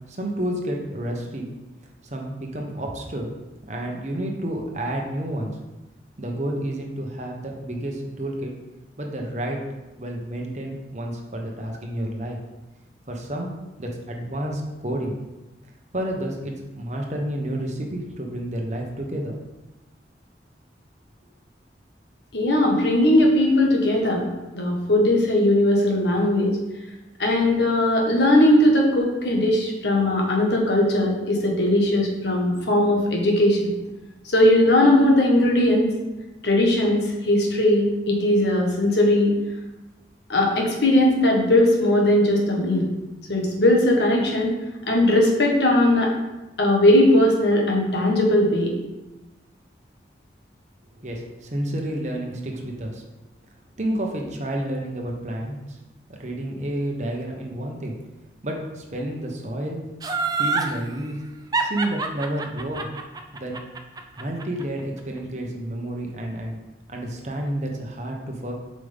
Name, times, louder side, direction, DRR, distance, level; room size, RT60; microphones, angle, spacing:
voice 1, 0.1-1.5 2.0-3.3 3.7-5.5 6.2-8.5 9.0-9.6 10.0-12.4 13.1-15.1 15.9-19.3 51.0-53.0 53.8-55.8 56.1-57.9 58.4-59.8 60.4-61.2 61.6-62.9 63.3-63.6 64.2-66.6 66.9-68.5, right 1 dB, 40° right, 1 dB, 1.1 m, -30 dB
voice 2, 22.3-24.3 24.5-26.6 27.2-33.7 34.2-35.9 36.4-39.3 40.3-42.9 43.3-44.5 44.9-46.1 46.6-48.7, left 1 dB, 75° left, 0 dB, 1.5 m, -19 dB
Laughter, 60.0-60.7 61.5-64.6 65.0-65.1, right 4 dB, 20° right, 0.4 m, -25 dB
7.5 x 5.2 x 3.6 m, 1.1 s
head